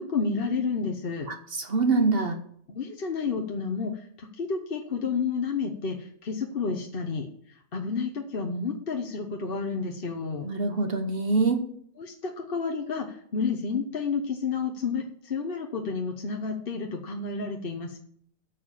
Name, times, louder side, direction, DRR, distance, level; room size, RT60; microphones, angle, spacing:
voice 1, 0.0-1.3 2.7-10.5 12.0-18.0, left 5 dB, 45° left, 3 dB, 1.1 m, -30 dB
voice 2, 1.3-2.4 10.4-11.6, right 3 dB, 45° right, 7 dB, 1.1 m, -25 dB
8.7 x 7.0 x 7.2 m, 0.64 s
omnidirectional pair, 1.5 m